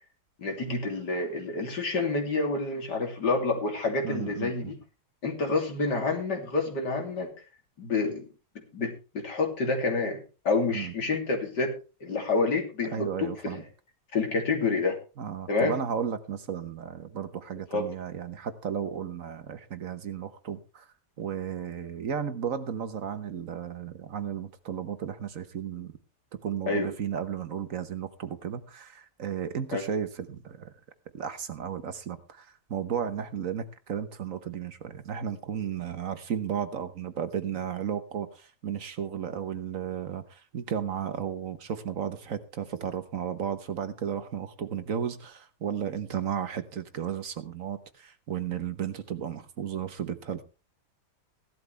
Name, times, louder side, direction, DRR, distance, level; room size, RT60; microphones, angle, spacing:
voice 1, 0.4-4.7 5.2-7.3 7.8-8.2 8.7-11.7 12.0-13.6 14.1-15.0 15.5-15.8 17.7-17.9 26.7-26.9 29.7-29.8, left 3 dB, 85° left, 3 dB, 3.5 m, -28 dB
voice 2, 4.0-4.7 10.7-10.9 12.9-13.6 15.2-20.9 21.2-25.9 26.4-30.7 31.1-50.4, right 8 dB, 55° right, 11 dB, 1.3 m, -34 dB
16.0 x 12.0 x 3.3 m, 0.32 s
omnidirectional pair, 1.8 m